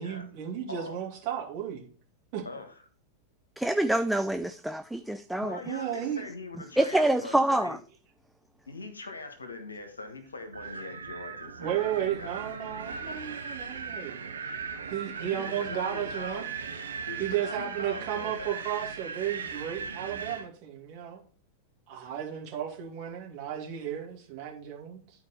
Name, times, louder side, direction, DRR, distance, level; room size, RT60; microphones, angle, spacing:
voice 1, 0.0-1.9 2.3-2.4 5.7-6.2 11.6-14.1 14.8-16.4 17.2-21.2 21.9-25.0, right 10 dB, 45° right, 2.2 m, -34 dB
voice 2, 0.7-1.0 2.4-2.7 5.4-7.8 8.7-12.6 15.3-16.5 17.1-18.6, left 3 dB, 75° left, 1.4 m, -42 dB
voice 3, 3.6-5.6 6.8-7.8, right 1 dB, ahead, 0.3 m, -26 dB
Wind, 10.5-20.5, right 5 dB, 70° right, 0.8 m, -38 dB
11.0 x 4.6 x 4.2 m
figure-of-eight pair, 90°, 0 cm